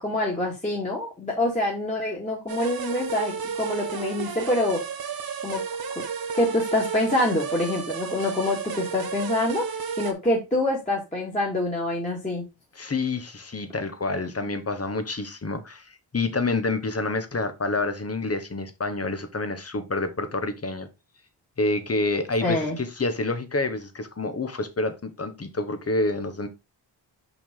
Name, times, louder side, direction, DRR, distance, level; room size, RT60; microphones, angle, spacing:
voice 1, 0.0-4.8 5.4-5.6 6.0-6.1 6.3-9.7 10.0-12.4 22.4-22.8, left 1 dB, 15° left, 2.1 m, -26 dB
sound 1, 2.5-10.1, right 6 dB, 55° right, 1.1 m, -32 dB
voice 2, 12.7-20.9 21.6-26.5, left 2 dB, 35° left, 1.3 m, -28 dB
6.0 x 5.4 x 3.8 m
wide cardioid pair, 105°, 44 cm